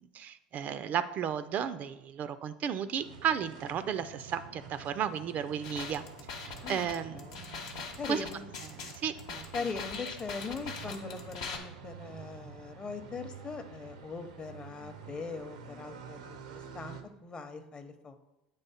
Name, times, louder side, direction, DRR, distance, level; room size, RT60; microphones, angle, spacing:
voice 1, 0.0-6.0 6.3-7.2 8.1-8.3 8.8-9.5, right 8 dB, 45° right, 13 dB, 0.4 m, -34 dB
sound 1, 3.0-17.0, right 6 dB, 85° right, 0.6 m, -49 dB
sound 2, 5.6-11.6, left 5 dB, 75° left, 0.9 m, -41 dB
voice 2, 6.6-7.4 8.0-8.4 9.5-18.2, left 4 dB, 25° left, 8 dB, 0.7 m, -41 dB
8.2 x 3.3 x 4.1 m, 0.94 s
hypercardioid pair, 80°, 4 cm